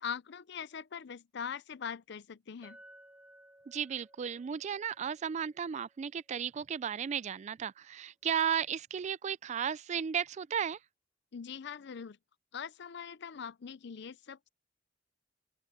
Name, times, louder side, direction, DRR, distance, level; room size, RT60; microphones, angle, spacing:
voice 1, 0.0-2.8 11.3-12.2 12.5-14.5, left 7 dB, 65° left, 0.5 m, -42 dB
Chink clink, 2.6-7.1, right 1 dB, 10° right, 2.5 m, -60 dB
voice 2, 3.7-10.8, right 8 dB, 40° right, 0.3 m, -34 dB
open air
head